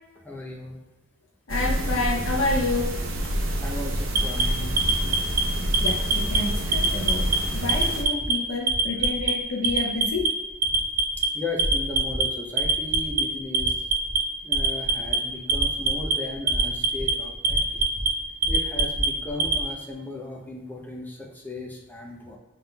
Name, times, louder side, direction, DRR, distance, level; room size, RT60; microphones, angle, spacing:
voice 1, 0.2-0.8 3.6-5.2 11.3-13.7 14.4-17.9 18.5-22.4, left 2 dB, 10° left, -1 dB, 0.6 m, -36 dB
voice 2, 1.5-3.0 5.8-10.4, left 2 dB, 80° left, -1 dB, 0.7 m, -29 dB
sound 1, 1.5-8.0, right 1 dB, 90° right, 0.7 m, -28 dB
Alarm, 4.1-5.4 5.7-6.4 6.7-7.4 7.7-8.3 8.7-9.3 9.6-10.3 10.6-11.3 11.6-12.2 12.6-13.2 13.5-14.2 14.5-15.2 15.5-16.1 16.5-17.1 17.4-18.1 18.4-19.6, right 3 dB, 45° right, 0.6 m, -23 dB
5.6 x 3.7 x 2.3 m, 1.1 s
head